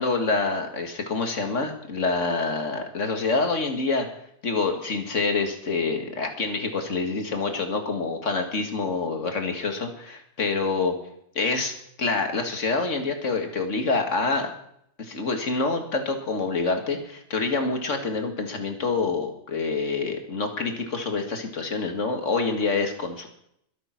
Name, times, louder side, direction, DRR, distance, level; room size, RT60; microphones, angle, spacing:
voice 1, 0.0-4.1 4.4-10.9 11.4-14.5 15.0-23.3, left 3 dB, 80° left, 5 dB, 2.3 m, -26 dB
22.0 x 7.6 x 5.9 m, 0.72 s
omnidirectional pair, 1.3 m